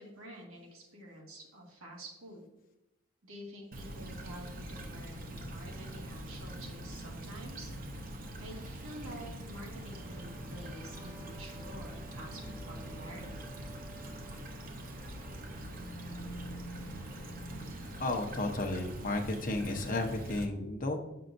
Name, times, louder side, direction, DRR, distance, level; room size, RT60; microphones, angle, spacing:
voice 1, 0.0-2.5 3.2-7.7 8.4-13.5, right 1 dB, 90° right, -1 dB, 1.8 m, -48 dB
Stream / Trickle dribble, 3.7-20.5, right 1 dB, 45° right, 0.7 m, -44 dB
sound 1, 6.8-19.6, right 1 dB, ahead, 1.0 m, -52 dB
voice 2, 18.0-21.0, left 2 dB, 40° left, 3 dB, 0.8 m, -33 dB
8.0 x 5.6 x 2.6 m, 0.94 s
head